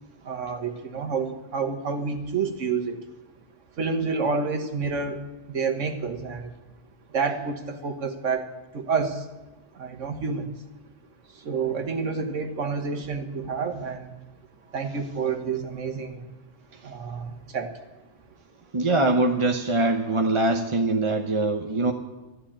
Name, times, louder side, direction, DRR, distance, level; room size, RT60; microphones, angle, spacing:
voice 1, 0.2-3.0 3.7-6.5 7.1-9.3 9.7-10.5 11.3-14.1 14.7-16.3 16.8-17.7, right 5 dB, 85° right, 6 dB, 1.6 m, -29 dB
voice 2, 18.7-21.9, right 2 dB, 30° right, 4 dB, 0.8 m, -23 dB
12.5 x 12.0 x 8.7 m, 1.1 s
omnidirectional pair, 1.2 m